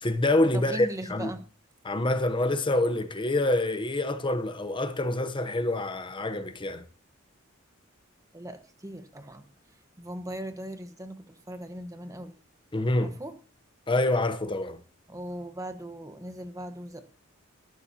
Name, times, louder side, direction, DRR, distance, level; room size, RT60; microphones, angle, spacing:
voice 1, 0.0-1.3 1.8-6.8 12.7-13.2 13.9-14.8, left 2 dB, 25° left, 0.9 m, -26 dB
voice 2, 0.5-1.4 8.3-12.3 13.0-13.4 15.1-17.0, right 1 dB, 15° right, 1.2 m, -39 dB
19.0 x 13.5 x 2.9 m
head